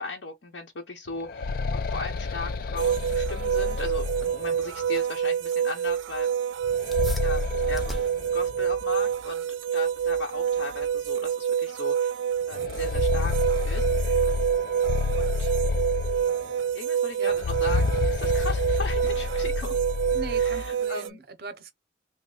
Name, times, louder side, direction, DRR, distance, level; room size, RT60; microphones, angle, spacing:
voice 1, 0.0-6.3 7.2-12.2 12.5-13.3 13.6-14.3 15.2-15.5 16.7-19.8 20.4-21.2, left 3 dB, 80° left, 0.8 m, -37 dB
sound 1, 1.1-4.9 6.6-8.8 9.1-9.2 10.1-10.2 10.7-10.8 12.5-16.6 17.3-20.7, left 3 dB, 50° left, 0.3 m, -29 dB
sound 2, 2.8-21.1, right 8 dB, 90° right, 0.3 m, -27 dB
sound 3, 6.9-16.8, equal, ahead, 0.6 m, -46 dB
voice 2, 20.1-21.7, right 4 dB, 55° right, 0.6 m, -39 dB
3.2 x 2.1 x 3.8 m
head